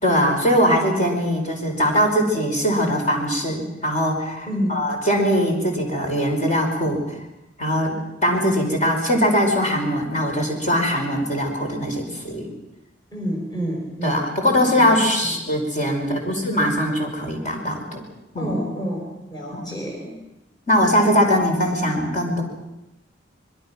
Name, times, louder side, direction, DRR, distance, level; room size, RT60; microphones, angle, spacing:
voice 1, 0.0-7.0 7.6-7.9 8.2-12.5 14.0-18.0 18.3-18.5 19.5-19.7 20.7-22.4, equal, 45° left, 2 dB, 5.2 m, -21 dB
voice 2, 4.5-4.9 13.1-14.2 14.6-15.4 18.4-20.2, equal, 25° left, 0 dB, 4.2 m, -29 dB
26.0 x 22.5 x 6.0 m, 0.89 s
head